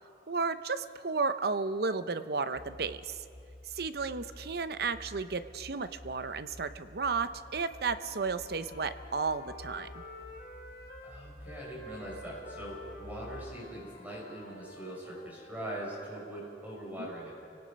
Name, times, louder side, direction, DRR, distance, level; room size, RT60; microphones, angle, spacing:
voice 1, 0.3-3.2 3.6-9.9 17.0-17.1, right 4 dB, 60° right, 11 dB, 0.8 m, -33 dB
sound 1, 2.5-13.8, equal, 10° left, 1.1 m, -51 dB
Wind instrument woodwind instrument, 7.6-11.1 11.4-15.7, left 2 dB, 55° left, 4.2 m, -50 dB
voice 2, 11.0-17.4, right 1 dB, 10° right, -5 dB, 6.6 m, -42 dB
30.0 x 18.0 x 5.3 m, 2.6 s
head